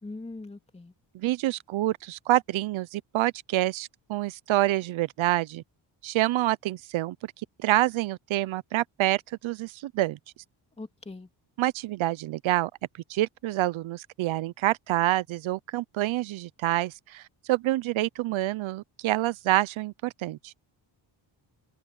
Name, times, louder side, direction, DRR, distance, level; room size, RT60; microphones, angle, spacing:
voice 1, 0.0-0.9 10.8-11.3, left 2 dB, 15° left, 3.2 m, -41 dB
voice 2, 1.1-5.6 6.0-7.3 7.6-10.2 11.6-12.7 13.1-17.2 17.5-20.5, right 16 dB, 90° right, 0.7 m, -27 dB
open air
wide cardioid pair, 175°, 46 cm